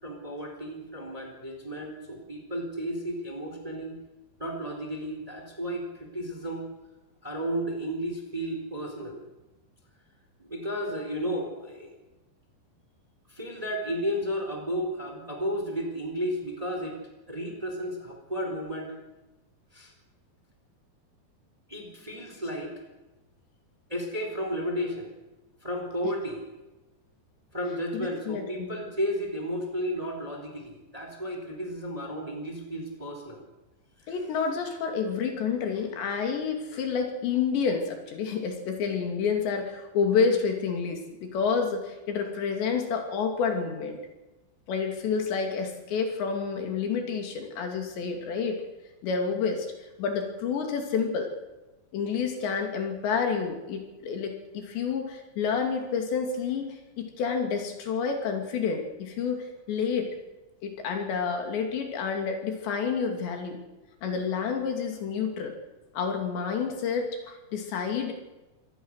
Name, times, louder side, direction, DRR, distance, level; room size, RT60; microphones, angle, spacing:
voice 1, 0.0-3.9 4.4-6.7 7.2-9.3 10.4-12.0 13.3-17.0 17.3-18.9 19.7-19.9 21.7-22.7 23.9-25.1 25.6-26.4 27.5-33.4 34.0-34.1, equal, 10° right, 3 dB, 3.3 m, -33 dB
voice 2, 27.9-28.8 34.1-44.0 44.7-48.6 49.0-49.7 50.0-51.3 51.9-60.2 60.6-63.6 64.0-65.6 65.9-68.1, left 6 dB, 75° left, 4 dB, 4.9 m, -29 dB
25.0 x 19.0 x 6.5 m, 1.1 s
omnidirectional pair, 5.1 m